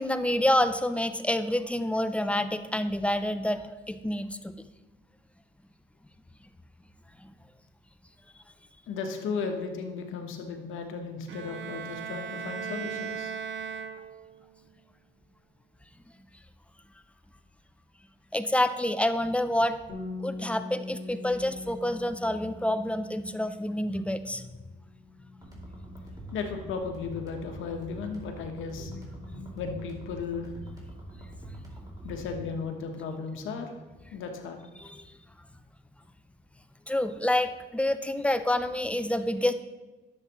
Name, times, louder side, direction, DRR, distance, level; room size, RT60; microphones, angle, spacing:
voice 1, 0.0-4.6 7.2-7.3 18.3-19.8 20.2-24.5 34.8-35.1 36.9-39.5, left 1 dB, 5° left, 10 dB, 0.5 m, -28 dB
voice 2, 8.9-13.3 26.3-30.5 32.0-33.8 34.1-34.6, left 5 dB, 85° left, 4 dB, 1.1 m, -35 dB
Bowed string instrument, 11.3-14.5, right 7 dB, 70° right, 0.6 m, -37 dB
Bass guitar, 19.9-24.6 24.9-26.1, left 3 dB, 50° left, 1.9 m, -42 dB
sound 1, 25.4-32.4, right 1 dB, 20° right, 2.7 m, -44 dB
11.0 x 7.2 x 3.0 m, 1.2 s
cardioid pair, 90°, 20 cm